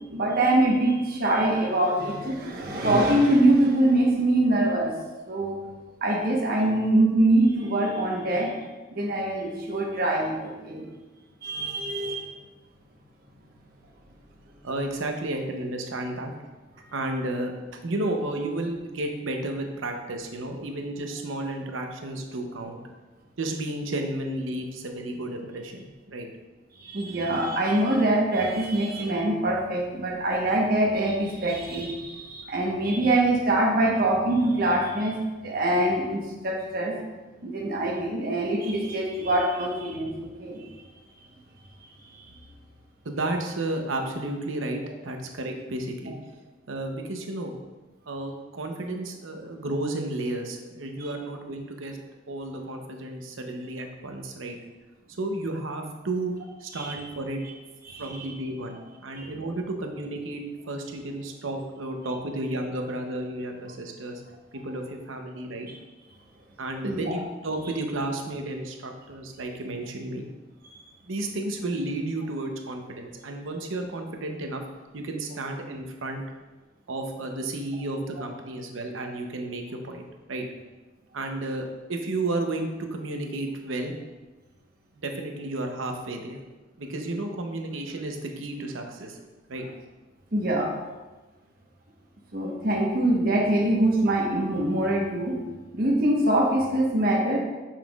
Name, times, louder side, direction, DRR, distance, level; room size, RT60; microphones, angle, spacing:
voice 1, 0.0-4.9 5.3-5.6 6.0-8.6 8.9-10.8 11.4-12.3 26.8-35.2 35.4-36.9 37.4-40.7 42.1-42.2 56.7-57.0 57.8-58.3 59.1-59.3 66.8-67.1 90.3-90.7 92.3-95.4 95.7-97.4, right 1 dB, 50° right, -1 dB, 1.1 m, -24 dB
voice 2, 14.6-16.3 16.9-22.8 23.4-26.3 43.0-46.1 46.7-47.6 48.1-52.0 52.3-54.6 55.2-56.3 56.6-57.4 58.0-64.2 64.5-65.7 66.6-70.3 71.0-74.6 74.9-76.2 76.9-80.4 81.1-83.9 85.0-86.4 86.8-89.7, right 2 dB, 80° right, 3 dB, 0.8 m, -32 dB
7.0 x 5.7 x 2.4 m, 1.2 s
head